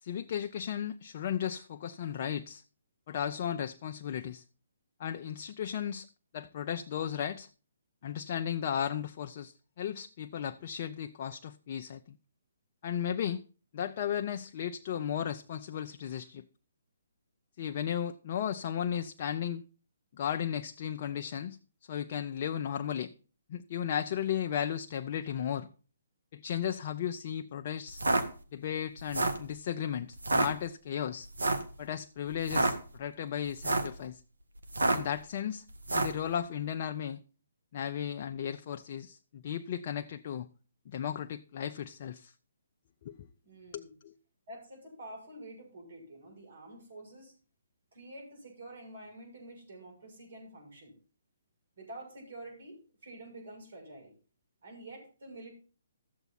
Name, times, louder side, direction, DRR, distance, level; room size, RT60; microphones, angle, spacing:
voice 1, 0.0-2.6 3.1-4.4 5.0-6.1 6.3-7.5 8.0-12.2 12.8-13.4 13.7-16.5 17.6-19.6 20.1-23.1 23.5-25.7 26.3-28.0 28.5-31.3 31.8-34.2 34.9-35.6 35.9-37.2 37.7-40.5 40.9-42.3 43.0-43.3 43.7-44.1, left 9 dB, 45° left, 0.5 m, -35 dB
sound 1, 27.9-28.2 29.0-29.4 30.2-30.5 31.4-31.7 32.4-32.7 33.5-33.9 34.7-35.1 35.8-36.2, right 2 dB, 85° right, 1.5 m, -28 dB
voice 2, 43.4-43.9 44.5-47.4 47.9-50.9 51.8-54.1 54.6-55.5, right 1 dB, 60° right, 7.4 m, -48 dB
13.5 x 8.0 x 4.2 m
figure-of-eight pair, 135°, 0 cm